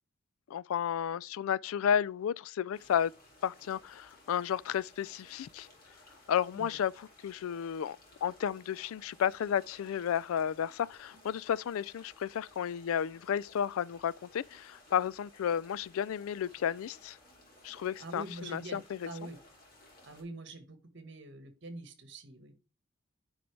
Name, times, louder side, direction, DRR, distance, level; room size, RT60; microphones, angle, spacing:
voice 1, 0.5-3.1 3.4-5.7 6.3-17.2 17.6-19.1, left 8 dB, 75° left, 0.3 m, -32 dB
sound 1, 2.7-20.2, left 1 dB, 40° left, 2.7 m, -59 dB
voice 2, 18.0-19.4 20.0-22.5, right 2 dB, 55° right, 1.5 m, -45 dB
9.3 x 4.4 x 3.2 m
head